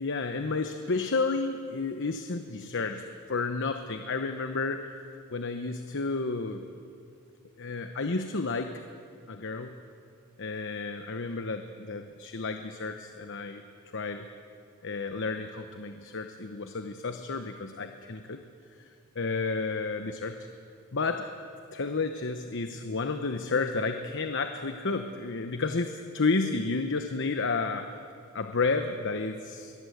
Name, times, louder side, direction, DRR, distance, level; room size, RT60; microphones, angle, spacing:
voice 1, 0.0-5.0 5.3-6.6 7.6-8.8 9.3-9.8 10.4-13.6 13.9-14.3 14.8-18.4 19.1-20.4 20.9-21.3 21.7-28.0 28.3-29.7, left 3 dB, 60° left, 7 dB, 1.0 m, -31 dB
23.0 x 20.5 x 8.0 m, 2.4 s
head